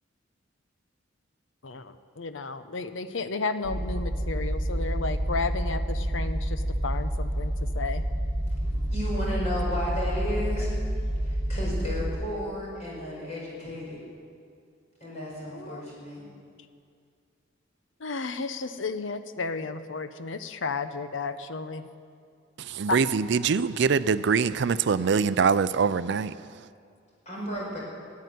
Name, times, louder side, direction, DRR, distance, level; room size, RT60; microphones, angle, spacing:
voice 1, 1.6-8.0 15.5-15.8 18.0-21.9 22.9-23.0, left 3 dB, 80° left, 0.8 m, -33 dB
sound 1, 3.6-12.1, equal, 60° left, 2.5 m, -29 dB
voice 2, 8.7-10.7 11.2-14.0 15.0-16.2 27.3-27.8, left 1 dB, 35° left, 5.1 m, -33 dB
voice 3, 22.6-26.7, right 5 dB, 65° right, 0.4 m, -24 dB
13.5 x 9.6 x 9.3 m
head